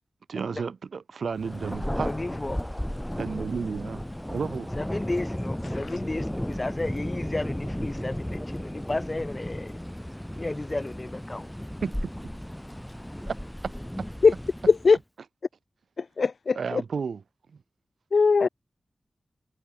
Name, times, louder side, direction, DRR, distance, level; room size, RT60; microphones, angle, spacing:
voice 1, 0.3-2.1 3.2-4.0 4.3-4.7 11.8-12.1 13.3-13.4 14.0-14.1 16.6-17.2, right 5 dB, 90° right, 0.7 m, -32 dB
Thunder, 1.4-15.0, equal, 5° left, 0.4 m, -34 dB
voice 2, 2.0-2.6 4.8-9.8 10.4-11.5, left 2 dB, 30° left, 2.2 m, -33 dB
voice 3, 14.7-15.0 16.0-16.8 18.1-18.5, left 4 dB, 65° left, 0.6 m, -20 dB
wide cardioid pair, 80°, 0 cm